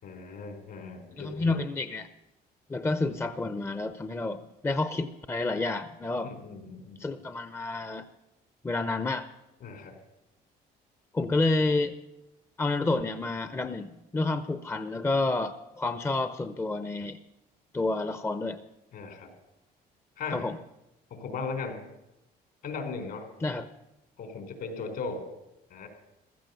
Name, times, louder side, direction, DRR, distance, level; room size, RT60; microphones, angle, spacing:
voice 1, 0.0-1.6 6.2-7.0 9.6-10.0 18.9-19.3 20.2-20.5 21.1-21.8 22.6-23.3 24.2-25.3 25.7-25.9, left 4 dB, 65° left, 6 dB, 4.0 m, -37 dB
voice 2, 1.2-2.1 2.7-6.3 7.0-8.1 8.6-9.3 11.1-11.9 12.6-17.2 17.7-18.6 20.3-20.6 23.4-23.7, left 2 dB, 15° left, 10 dB, 0.7 m, -29 dB
15.5 x 13.5 x 6.9 m, 0.92 s
cardioid pair, 110°, 17 cm